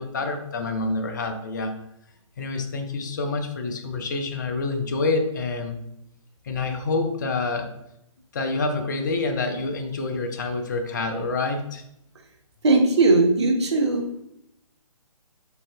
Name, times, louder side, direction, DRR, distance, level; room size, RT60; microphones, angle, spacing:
voice 1, 0.0-1.7 2.4-5.8 6.5-7.7 8.3-11.8, left 3 dB, 35° left, 6 dB, 0.5 m, -27 dB
voice 2, 12.6-14.0, right 3 dB, 50° right, 2 dB, 0.8 m, -18 dB
3.9 x 3.6 x 2.6 m, 0.79 s
figure-of-eight pair, 135°, 18 cm